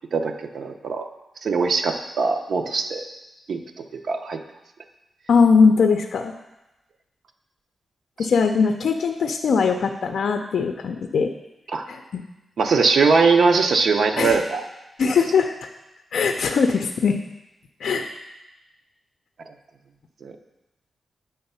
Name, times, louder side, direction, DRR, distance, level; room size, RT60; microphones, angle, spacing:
voice 1, 0.1-1.1 1.4-3.0 3.5-3.6 4.1-4.4 8.2-8.3 11.7-11.9 12.6-14.6 20.2-20.3, right 4 dB, 65° right, 5 dB, 0.6 m, -21 dB
voice 2, 5.3-6.3 8.2-11.3 11.9-12.2 14.2-14.4 15.0-15.5 16.1-17.2 17.8-18.1, left 5 dB, 75° left, 5 dB, 0.4 m, -20 dB
8.8 x 3.4 x 5.5 m, 0.96 s
wide cardioid pair, 145°, 0 cm